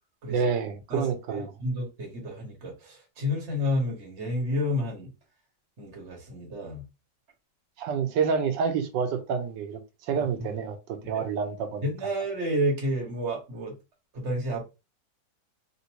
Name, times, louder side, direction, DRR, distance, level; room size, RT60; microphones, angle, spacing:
voice 1, 0.3-1.5 7.8-9.8 10.1-10.8 11.1-11.9, right 6 dB, 80° right, 1.3 m, -28 dB
voice 2, 1.3-5.1 5.8-6.8 10.1-10.5 11.1-11.2 11.8-13.7 14.1-14.6, left 1 dB, 45° right, 1.5 m, -30 dB
3.5 x 2.7 x 2.8 m
omnidirectional pair, 1.9 m